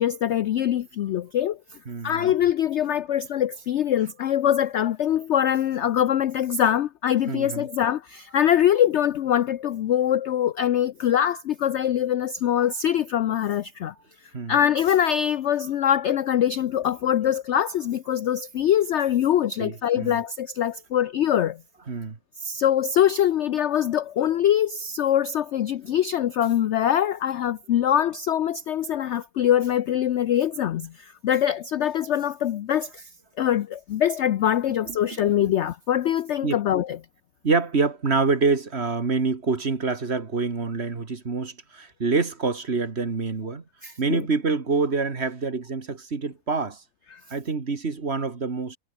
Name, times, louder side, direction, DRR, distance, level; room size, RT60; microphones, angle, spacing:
voice 1, 0.0-1.6 2.0-13.9 14.5-21.6 22.4-33.1 33.4-37.0 43.8-44.2 47.1-47.2, left 10 dB, 70° left, 0.7 m, -23 dB
voice 2, 1.9-2.3 7.3-7.7 14.3-14.6 19.6-20.2 21.9-22.2 34.9-35.0 35.4-35.5 36.4-36.6 37.4-43.6 44.0-46.8 47.3-48.8, right 4 dB, 40° right, 2.1 m, -26 dB
omnidirectional pair, 1.7 m